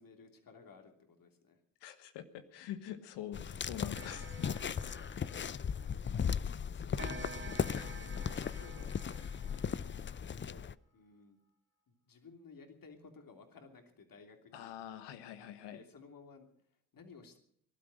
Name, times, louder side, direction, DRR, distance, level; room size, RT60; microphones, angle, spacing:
voice 1, 0.0-1.6 4.9-5.1 5.8-9.0 9.4-10.7 10.9-11.4 11.9-14.7 15.7-17.4, left 4 dB, 55° left, 5 dB, 3.1 m, -57 dB
voice 2, 1.8-5.6 7.7-7.9 14.5-15.8, left 11 dB, 80° left, 11 dB, 1.4 m, -46 dB
sound 1, 3.3-10.7, left 7 dB, 30° left, 0.6 m, -37 dB
Clock, 3.9-6.2 7.0-10.4, right 5 dB, 30° right, 2.3 m, -51 dB
18.5 x 12.0 x 6.4 m, 0.70 s
hypercardioid pair, 45°, 41 cm